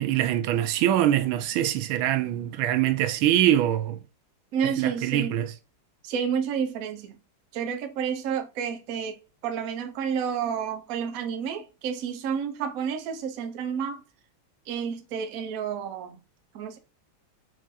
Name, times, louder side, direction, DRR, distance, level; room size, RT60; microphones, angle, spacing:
voice 1, 0.0-4.0 4.8-5.5, right 12 dB, 85° right, 1.4 m, -23 dB
voice 2, 4.5-5.4 6.0-7.2 7.5-9.2 9.4-14.0 14.7-16.2 16.5-16.8, right 7 dB, 65° right, 0.8 m, -30 dB
4.9 x 2.6 x 3.9 m
omnidirectional pair, 2.2 m